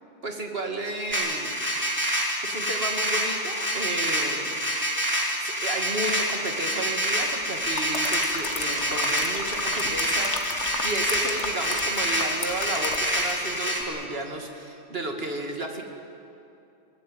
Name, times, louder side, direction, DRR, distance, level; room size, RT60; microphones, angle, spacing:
voice 1, 0.2-1.6 2.4-4.5 5.4-15.8, right 2 dB, 55° right, 3 dB, 2.6 m, -33 dB
sound 1, 1.1-13.8, equal, 10° right, 3.1 m, -27 dB
sound 2, 7.4-13.5 13.8-14.0, left 4 dB, 70° left, 1.8 m, -34 dB
22.5 x 20.0 x 9.2 m, 2.7 s
omnidirectional pair, 1.2 m